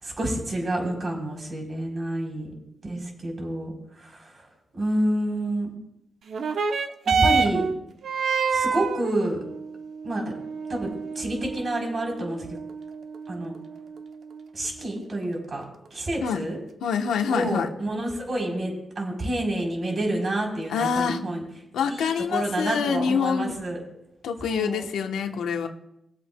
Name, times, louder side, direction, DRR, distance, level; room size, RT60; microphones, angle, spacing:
voice 1, 0.0-2.5 2.8-4.5 4.7-5.7 7.1-7.7 8.5-9.4 10.0-10.2 10.7-12.5 13.3-13.5 14.5-15.6 15.9-16.6 17.3-21.4 21.9-23.8 24.4-24.8, right 1 dB, 45° right, 0 dB, 3.7 m, -29 dB
sound 1, 6.3-15.2 16.1-16.2, right 5 dB, 70° right, 0.7 m, -28 dB
voice 2, 16.8-17.7 20.7-21.2 21.7-23.5 24.2-25.7, left 6 dB, 90° left, 5 dB, 1.0 m, -26 dB
22.0 x 7.9 x 2.3 m, 0.83 s
cardioid pair, 65°, 0 cm